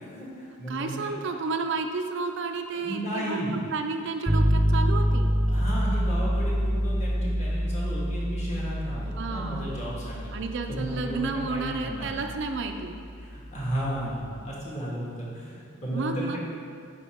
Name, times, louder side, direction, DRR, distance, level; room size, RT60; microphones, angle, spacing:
voice 1, 0.0-0.9 2.7-3.6 5.5-10.3 10.7-12.1 13.2-16.4, equal, 30° left, -6 dB, 1.6 m, -33 dB
voice 2, 0.7-5.3 9.0-9.8 10.3-13.0 15.9-16.4, right 4 dB, 55° right, 5 dB, 0.4 m, -31 dB
sound 1, 4.3-14.1, equal, 10° right, 0.7 m, -27 dB
8.5 x 5.0 x 3.5 m, 2.3 s
head